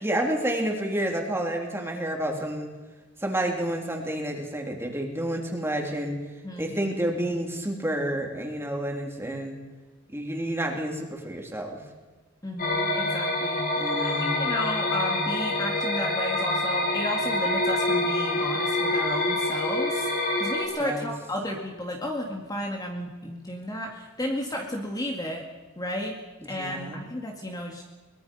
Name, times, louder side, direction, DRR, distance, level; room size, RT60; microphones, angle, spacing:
voice 1, 0.0-2.7 3.2-6.2 6.6-9.6 10.1-11.8 13.8-14.4 20.8-21.1 26.6-27.0, right 1 dB, 10° right, 1 dB, 3.3 m, -29 dB
voice 2, 6.4-6.7 12.4-13.6 14.0-25.5 25.8-26.2 26.4-27.8, left 1 dB, 20° left, 1 dB, 2.0 m, -33 dB
sound 1, 12.6-20.7, left 2 dB, 45° left, 4.6 m, -26 dB
23.5 x 21.0 x 5.4 m, 1.3 s
head